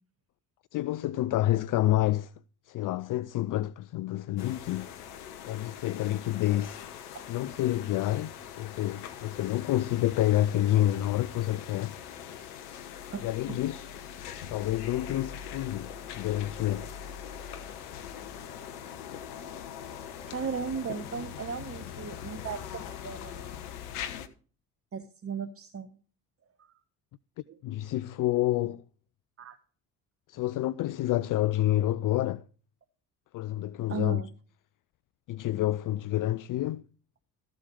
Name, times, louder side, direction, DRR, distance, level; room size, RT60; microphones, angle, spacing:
voice 1, 0.7-2.3 2.7-4.9 5.4-6.8 7.3-12.0 13.2-13.9 14.5-16.9 27.6-28.8 30.3-32.4 33.3-34.2 35.3-36.8, left 14 dB, 45° left, 0.5 m, -28 dB
sound 1, 4.4-24.3, left 9 dB, 75° left, 1.3 m, -42 dB
voice 2, 20.3-23.5 24.9-26.0 26.6-26.7 27.5-27.6 29.4-29.6 33.9-34.3, right 6 dB, 30° right, 1.3 m, -36 dB
14.0 x 7.9 x 4.8 m
hypercardioid pair, 55°, 45 cm